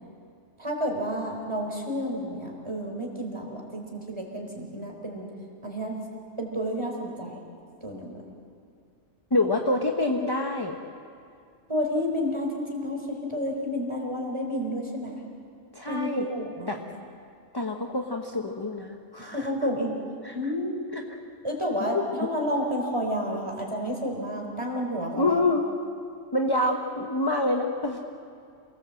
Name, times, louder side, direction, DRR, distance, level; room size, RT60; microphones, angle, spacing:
voice 1, 0.6-5.3 5.6-6.0 6.4-7.4 7.8-8.2 11.7-15.2 15.9-16.8 19.2-19.9 20.3-20.9 21.4-25.4, equal, 20° right, 0 dB, 4.1 m, -30 dB
voice 2, 9.3-10.8 15.7-16.3 16.7-16.8 17.5-19.5 20.2-20.4 20.9-21.2 21.9-22.0 25.1-25.6 26.3-28.0, left 2 dB, 20° left, 2 dB, 1.1 m, -26 dB
28.5 x 19.0 x 7.8 m, 2.4 s
omnidirectional pair, 1.5 m